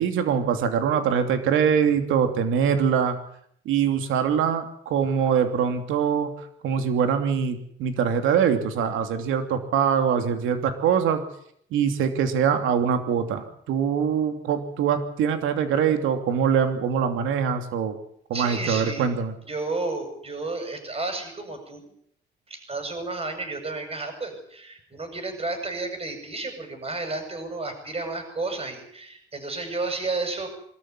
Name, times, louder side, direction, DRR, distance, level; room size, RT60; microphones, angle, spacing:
voice 1, 0.0-3.2 3.6-6.3 6.6-11.2 11.7-17.9 18.3-19.3, right 7 dB, 90° right, 7 dB, 2.9 m, -23 dB
voice 2, 18.3-19.1 19.5-21.9 22.5-30.5, right 3 dB, 30° right, 6 dB, 7.9 m, -32 dB
24.5 x 14.0 x 9.8 m, 0.67 s
cardioid pair, 90°, 20 cm